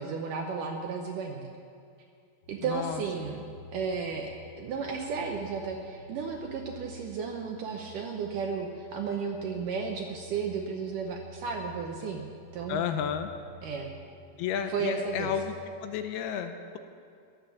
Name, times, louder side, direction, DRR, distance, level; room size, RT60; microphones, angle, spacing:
voice 1, 0.0-1.5 2.5-3.4 3.7-4.3 4.6-12.3 12.5-12.8 13.6-13.9 14.7-15.3, right 5 dB, 75° right, 2 dB, 2.0 m, -33 dB
sound 1, 2.4-15.8, left 1 dB, 65° left, 1.2 m, -51 dB
voice 2, 2.6-3.0 12.7-13.3 14.4-15.5 15.8-16.8, left 8 dB, 80° left, 8 dB, 2.6 m, -32 dB
20.5 x 7.9 x 7.0 m, 2.3 s
omnidirectional pair, 4.7 m